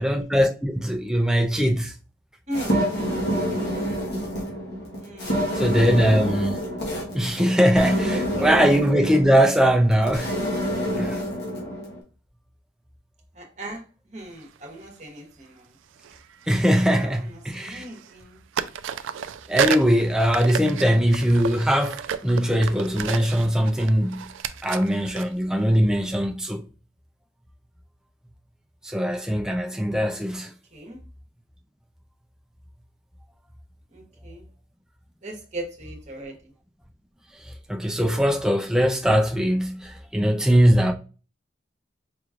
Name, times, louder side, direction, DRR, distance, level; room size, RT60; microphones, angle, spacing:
voice 1, 0.0-1.9 5.5-6.6 7.1-10.3 11.0-11.2 16.5-17.8 19.5-24.3 24.6-26.6 28.8-30.5 37.7-40.9, equal, 5° right, 0.4 m, -21 dB
sound 1, 2.5-12.0, equal, 55° left, 1.1 m, -27 dB
voice 2, 2.5-2.9 5.0-6.2 8.1-8.6 13.3-13.8 14.1-15.7 17.0-18.4 30.7-31.0 33.9-34.4 35.2-36.5, right 1 dB, 35° right, 1.1 m, -38 dB
sound 2, 14.4-14.6 16.0-17.3 17.5-18.3 18.5-26.3, right 8 dB, 80° right, 0.3 m, -32 dB
5.0 x 3.0 x 2.4 m
head